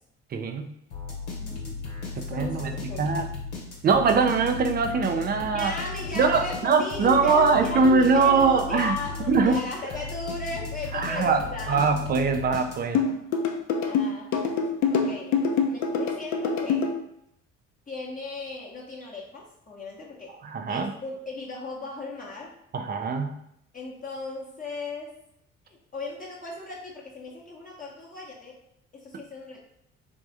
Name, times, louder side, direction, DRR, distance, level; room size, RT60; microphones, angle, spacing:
voice 1, 0.3-0.7 2.2-3.3 3.8-5.7 6.1-9.0 9.3-9.6 10.9-11.4 11.7-13.0 20.4-20.9 22.7-23.4, right 4 dB, 25° right, 7 dB, 0.5 m, -22 dB
sound 1, 0.9-13.1, left 4 dB, 80° left, 1.0 m, -36 dB
voice 2, 1.4-1.7 2.1-3.1 5.5-11.9 13.8-14.4 14.9-16.9 17.9-20.4 20.7-22.5 23.7-25.2 25.6-28.6 28.9-29.7, left 3 dB, 25° left, -4 dB, 0.9 m, -36 dB
sound 2, 12.9-16.9, left 5 dB, 50° left, 0.6 m, -24 dB
3.5 x 2.5 x 3.4 m, 0.75 s
figure-of-eight pair, 50°, 35 cm